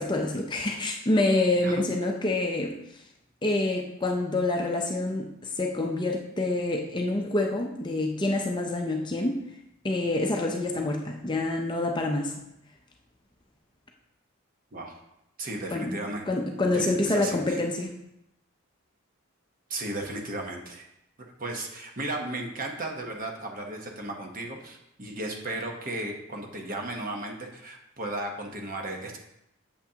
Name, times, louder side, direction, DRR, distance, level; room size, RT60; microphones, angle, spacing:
voice 1, 0.0-2.8 3.4-9.4 9.8-12.3 15.7-16.0 16.3-17.9, left 2 dB, 20° left, 2 dB, 0.5 m, -27 dB
voice 2, 15.4-16.3 16.7-17.6 19.7-20.8 21.4-29.2, right 2 dB, 40° right, 2 dB, 1.0 m, -35 dB
8.0 x 6.9 x 2.8 m, 0.83 s
head